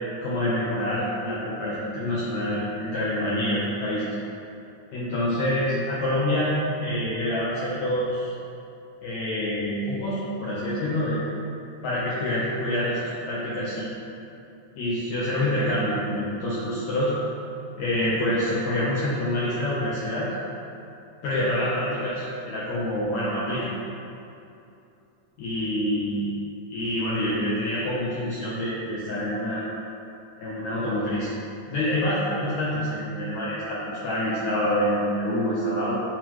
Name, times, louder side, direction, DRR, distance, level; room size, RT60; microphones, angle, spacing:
voice 1, 0.2-4.1 4.9-8.3 9.0-11.2 11.8-13.9 14.8-17.1 17.8-20.3 21.2-23.7 25.4-26.4 26.7-29.6 30.4-31.3 31.7-35.9, left 1 dB, 70° left, -9 dB, 1.9 m, -26 dB
9.1 x 4.0 x 3.1 m, 2.7 s
omnidirectional pair, 4.1 m